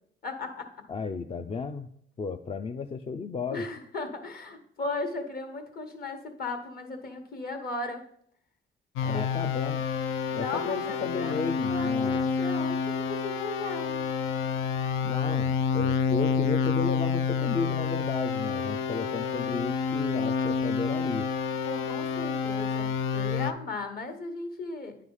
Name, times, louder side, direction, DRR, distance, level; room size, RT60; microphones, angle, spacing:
voice 1, 0.2-0.7 3.5-8.0 9.0-9.3 10.3-14.0 21.7-25.0, left 3 dB, 50° left, 5 dB, 1.3 m, -36 dB
voice 2, 0.9-1.9 2.2-3.7 9.0-9.8 10.4-12.3 15.0-21.3, left 4 dB, 30° left, 7 dB, 0.4 m, -34 dB
sound 1, 9.0-23.5, left 6 dB, 90° left, 0.5 m, -28 dB
9.7 x 3.3 x 5.4 m, 0.68 s
cardioid pair, 90°, 20 cm